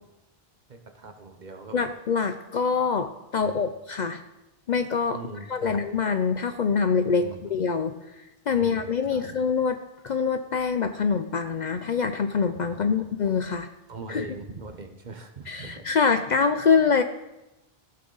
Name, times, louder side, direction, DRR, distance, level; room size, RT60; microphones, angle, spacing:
voice 1, 0.7-1.9 3.4-3.7 5.1-5.8 7.2-7.6 8.5-9.4 12.7-13.1 13.9-15.9, right 3 dB, 45° right, 6 dB, 1.0 m, -41 dB
voice 2, 1.7-4.2 4.7-5.2 5.5-8.0 8.5-9.8 10.0-13.7 14.1-14.3 15.5-17.0, left 5 dB, 55° left, 8 dB, 0.6 m, -25 dB
14.5 x 6.6 x 3.9 m, 0.96 s
omnidirectional pair, 1.1 m